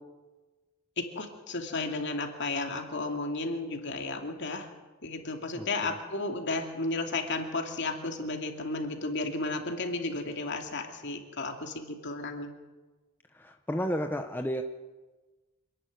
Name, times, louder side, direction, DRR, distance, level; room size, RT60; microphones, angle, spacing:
voice 1, 1.0-4.7 5.0-12.5, left 3 dB, 55° left, 3 dB, 2.6 m, -33 dB
voice 2, 5.5-5.9 13.3-14.6, equal, 10° left, 5 dB, 0.8 m, -32 dB
26.5 x 11.5 x 9.4 m, 1.2 s
head